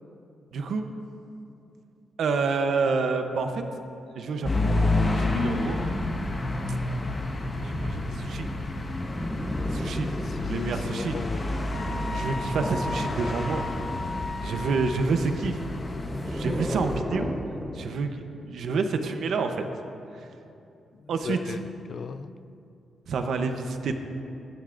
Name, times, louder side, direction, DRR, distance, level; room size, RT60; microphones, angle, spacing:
voice 1, 0.5-0.8 2.2-3.6 4.1-4.5 5.1-5.8 7.6-8.5 9.7-10.1 10.5-11.2 12.1-13.6 14.4-15.6 16.3-17.4 17.7-19.6 20.2-20.3 21.1-21.6 23.1-23.9, right 4 dB, 60° right, 6 dB, 0.8 m, -28 dB
sound 1, 4.4-17.0, left 2 dB, 20° left, 1.4 m, -29 dB
sound 2, 9.0-11.0 12.6-14.4 15.7-18.0 19.3-19.4, equal, ahead, 0.7 m, -35 dB
voice 2, 10.3-11.5 21.0-22.3, left 6 dB, 40° left, 12 dB, 0.4 m, -36 dB
sound 3, 11.7-14.9, left 3 dB, 75° left, 3.2 m, -36 dB
22.0 x 11.0 x 2.6 m, 2.7 s
wide cardioid pair, 165°, 0 cm